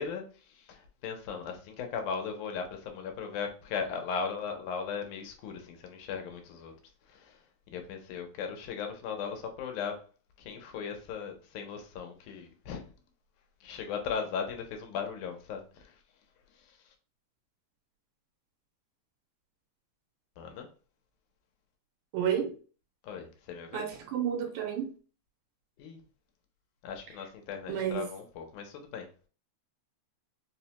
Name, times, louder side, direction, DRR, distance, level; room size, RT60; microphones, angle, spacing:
voice 1, 0.0-6.7 7.1-10.0 10.4-12.9 13.6-16.0 16.5-16.8 20.4-20.7 23.0-23.9 25.8-26.0 26.8-29.1, left 6 dB, 90° left, 2.2 m, -38 dB
voice 2, 22.1-22.5 23.7-24.9 27.7-28.1, right 9 dB, 90° right, 2.2 m, -31 dB
5.0 x 2.1 x 2.8 m
omnidirectional pair, 3.4 m